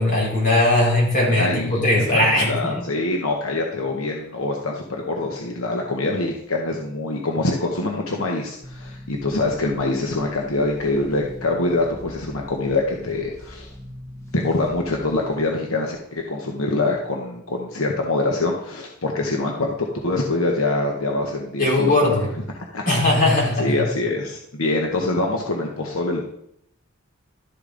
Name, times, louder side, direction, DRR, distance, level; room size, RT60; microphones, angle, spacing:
voice 1, 0.0-2.8 21.6-22.2 22.9-23.8, left 1 dB, 40° left, -4 dB, 4.0 m, -19 dB
voice 2, 1.3-13.7 14.3-19.8 20.0-22.3 22.5-26.2, left 2 dB, 80° left, 1 dB, 1.0 m, -25 dB
sound 1, 8.6-15.4, equal, 15° left, 1.1 m, -41 dB
12.0 x 6.7 x 3.9 m, 0.75 s
head